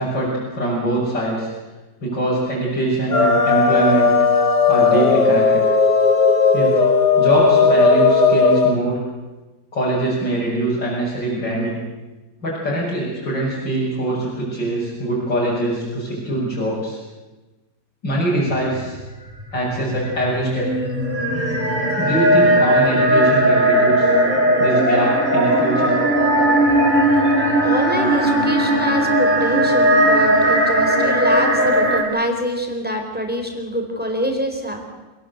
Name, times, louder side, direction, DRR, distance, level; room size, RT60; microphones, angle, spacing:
voice 1, 0.0-1.5 2.0-4.2 4.7-5.7 6.5-6.8 7.2-9.0 9.7-11.8 12.4-17.0 18.0-19.0 19.5-20.7 22.0-24.1 24.6-26.0, right 2 dB, 90° left, -7 dB, 7.2 m, -23 dB
sound 1, 3.1-8.7, left 4 dB, 70° left, 2.9 m, -15 dB
sound 2, 19.4-32.0, right 1 dB, 25° right, 4.1 m, -17 dB
voice 2, 27.6-34.8, equal, 5° right, 3 dB, 3.9 m, -25 dB
27.0 x 18.5 x 8.1 m, 1.1 s
omnidirectional pair, 1.9 m